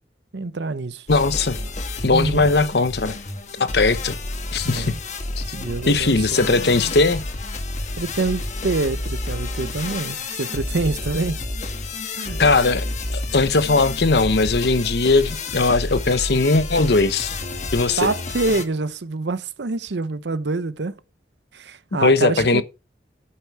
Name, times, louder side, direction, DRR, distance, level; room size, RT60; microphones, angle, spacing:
voice 1, 0.3-1.1 2.0-2.5 4.6-5.0 5.5-6.8 8.0-11.4 12.2-12.4 18.0-21.0 21.5-22.6, right 3 dB, 80° right, 0.7 m, -26 dB
voice 2, 1.1-1.6 2.0-3.1 3.6-4.2 4.5-4.9 5.4-5.5 5.9-7.2 12.4-12.9 13.1-17.3 17.7-18.1 22.0-22.6, left 3 dB, 70° left, 0.9 m, -19 dB
sound 1, 1.1-18.7, left 2 dB, 40° left, 1.3 m, -30 dB
8.8 x 8.3 x 4.6 m
head